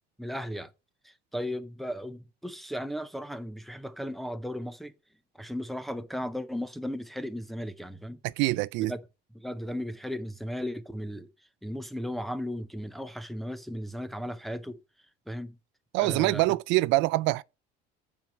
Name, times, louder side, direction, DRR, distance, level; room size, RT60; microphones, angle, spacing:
voice 1, 0.2-0.7 1.0-4.9 5.4-8.2 8.9-9.0 9.3-11.3 11.6-14.8 15.3-15.6 16.0-16.4, equal, ahead, 0.6 m, -36 dB
voice 2, 8.2-8.9 15.9-17.4, right 20 dB, 70° right, 0.4 m, -25 dB
9.1 x 4.5 x 6.0 m
cardioid pair, 150°, 20 cm